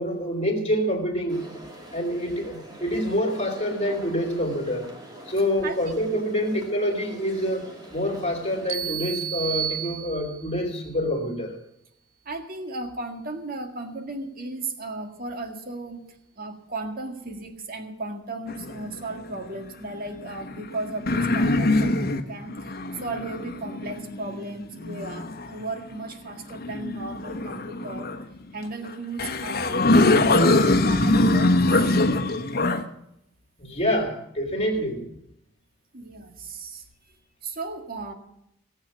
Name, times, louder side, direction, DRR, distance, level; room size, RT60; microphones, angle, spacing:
voice 1, 0.0-1.6 1.9-4.9 5.3-11.6 33.6-35.0, equal, 35° left, 1 dB, 3.1 m, -26 dB
sound 1, 1.3-8.8, right 1 dB, 20° right, 2.5 m, -45 dB
sound 2, 8.7-10.6, right 10 dB, 75° right, 0.7 m, -31 dB
voice 2, 12.3-16.0 16.4-28.1 28.5-32.0 35.9-36.8 37.4-38.1, right 2 dB, 50° right, 5 dB, 1.8 m, -35 dB
sound 3, 18.5-19.4 20.2-25.6 26.5-28.2 28.9-29.0 29.2-32.8, left 2 dB, 55° left, 1.1 m, -23 dB
18.0 x 8.0 x 7.2 m, 0.78 s
head